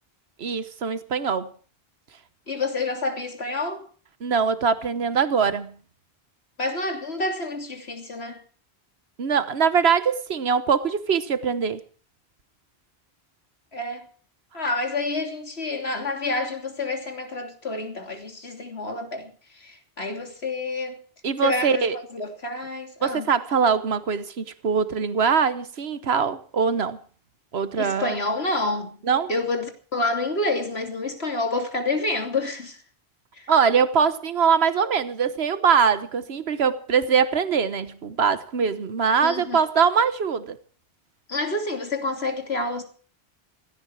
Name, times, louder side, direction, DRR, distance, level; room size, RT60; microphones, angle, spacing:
voice 1, 0.4-1.5 4.2-5.7 9.2-11.8 21.2-22.0 23.0-27.0 27.5-28.1 29.0-29.3 33.5-40.6, right 6 dB, 85° right, 1.4 m, -22 dB
voice 2, 2.5-3.8 6.6-8.4 13.7-14.1 14.5-21.0 21.4-23.3 27.8-29.0 29.3-32.8 33.4-33.5 39.2-39.6 41.3-42.8, left 2 dB, 85° left, 3.3 m, -28 dB
17.0 x 16.0 x 4.8 m
omnidirectional pair, 1.0 m